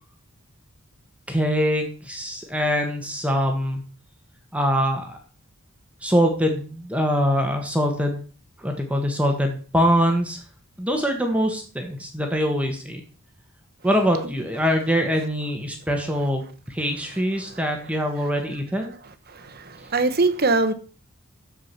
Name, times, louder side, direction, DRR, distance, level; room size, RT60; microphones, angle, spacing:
voice 1, 1.3-3.8 4.5-5.2 6.0-8.2 8.6-10.4 10.8-13.0 13.8-18.9, equal, 5° right, 1.3 m, -23 dB
voice 2, 19.3-20.7, right 3 dB, 45° right, 1.0 m, -22 dB
13.0 x 4.9 x 5.7 m
head